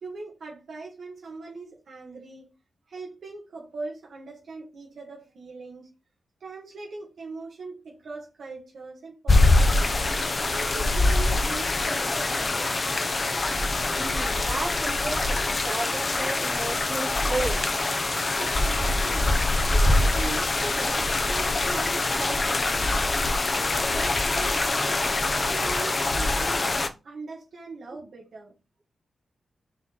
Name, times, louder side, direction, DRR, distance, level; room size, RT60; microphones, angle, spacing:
voice 1, 0.0-2.5 2.9-5.9 6.4-10.0 10.5-12.8 18.4-19.4 19.7-22.8 23.9-26.6 27.0-28.5, right 3 dB, 55° right, 2.1 m, -40 dB
sound 1, 9.3-26.9, left 2 dB, 25° left, 0.7 m, -24 dB
voice 2, 14.0-17.9 21.6-21.8, right 3 dB, 30° right, 2.7 m, -34 dB
6.2 x 4.4 x 3.7 m
wide cardioid pair, 175°, 0 cm